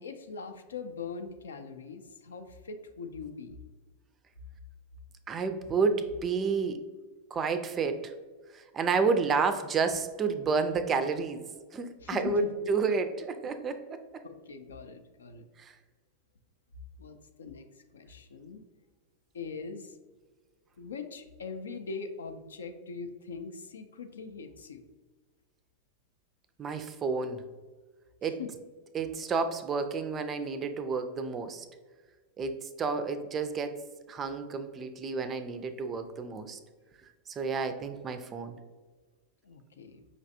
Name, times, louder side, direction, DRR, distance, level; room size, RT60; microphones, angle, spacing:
voice 1, 0.0-3.6 12.0-12.7 14.2-15.5 17.0-18.6 19.3-20.0 20.8-24.8 28.2-28.5 39.4-40.1, left 5 dB, 70° left, 8 dB, 0.4 m, -42 dB
voice 2, 5.3-6.8 7.3-8.1 8.5-14.0 15.6-15.7 26.6-27.4 28.2-28.4 28.9-31.7 32.4-33.8 34.1-36.6 37.3-38.6, right 4 dB, 25° right, 9 dB, 0.4 m, -30 dB
5.2 x 3.2 x 2.6 m, 1.4 s
figure-of-eight pair, 90°, 0 cm